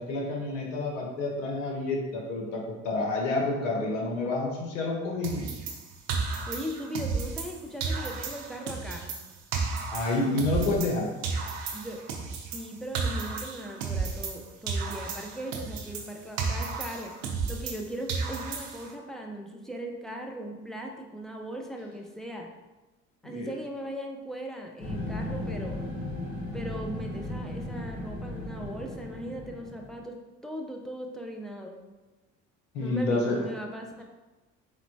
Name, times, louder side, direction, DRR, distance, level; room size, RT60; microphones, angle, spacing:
voice 1, 0.0-5.5 9.9-11.1 23.2-23.5 32.7-33.5, left 2 dB, 85° left, 0 dB, 0.8 m, -29 dB
sound 1, 5.2-7.5 7.8-11.0 11.2-14.4 14.7-17.8 18.1-18.9, right 4 dB, 85° right, 0.6 m, -33 dB
voice 2, 6.5-9.1 11.7-12.0 12.3-17.1 17.5-22.5 23.2-25.8 26.5-30.2 30.4-31.8 32.8-34.0, equal, ahead, 1 dB, 0.6 m, -38 dB
sound 2, 24.8-30.0, left 1 dB, 60° left, 1.2 m, -36 dB
4.2 x 3.3 x 2.7 m, 1.1 s
hypercardioid pair, 60°, 37 cm